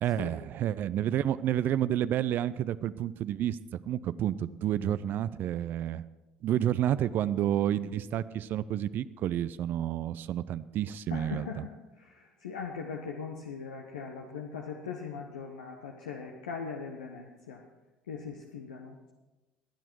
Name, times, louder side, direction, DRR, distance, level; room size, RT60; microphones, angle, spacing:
voice 1, 0.0-6.0 6.4-11.7, right 11 dB, 50° right, 16 dB, 0.5 m, -30 dB
voice 2, 11.1-17.6 18.1-19.1, left 5 dB, 80° left, 1 dB, 1.1 m, -40 dB
20.5 x 9.1 x 4.7 m, 1.1 s
hypercardioid pair, 60°, 4 cm